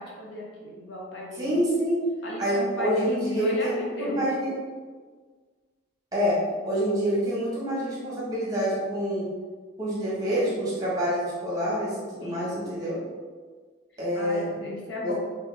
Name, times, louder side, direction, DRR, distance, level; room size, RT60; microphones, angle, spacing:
voice 1, 0.0-1.7 2.2-4.3 12.2-12.6 13.9-15.1, left 1 dB, 60° left, -3 dB, 0.8 m, -37 dB
voice 2, 1.4-2.0 2.4-4.5 6.1-6.3 6.6-9.2 9.8-13.0 14.0-14.5 15.0-15.1, equal, 20° right, -7 dB, 1.3 m, -27 dB
3.7 x 3.4 x 3.4 m, 1.5 s
head